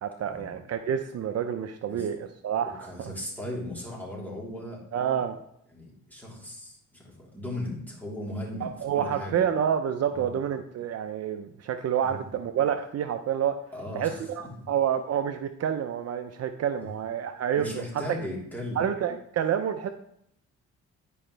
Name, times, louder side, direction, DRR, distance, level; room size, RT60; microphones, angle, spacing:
voice 1, 0.0-3.1 4.9-5.4 8.6-13.6 13.9-17.8 18.8-19.9, right 9 dB, 55° right, 8 dB, 0.6 m, -28 dB
voice 2, 2.6-4.8 5.7-9.4 10.1-10.3 12.0-12.3 13.7-14.7 16.8-17.0 17.6-18.9, left 1 dB, 5° left, -4 dB, 3.3 m, -37 dB
11.0 x 5.1 x 3.3 m, 0.73 s
cardioid pair, 90°, 30 cm